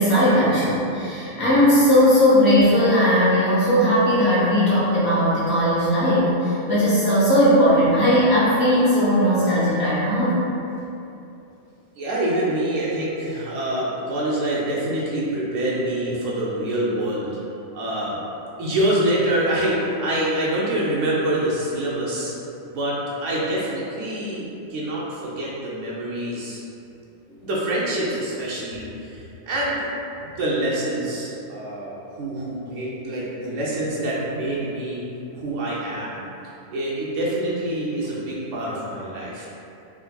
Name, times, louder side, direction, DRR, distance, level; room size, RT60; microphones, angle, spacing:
voice 1, 0.0-10.4, equal, 45° left, -10 dB, 1.2 m, -18 dB
voice 2, 12.0-17.4 17.7-18.2 18.6-22.3 22.6-26.6 27.4-29.9 30.4-35.0 35.3-36.2 36.7-39.5, right 1 dB, 70° right, -6 dB, 0.9 m, -26 dB
3.7 x 3.1 x 2.2 m, 2.8 s
omnidirectional pair, 1.4 m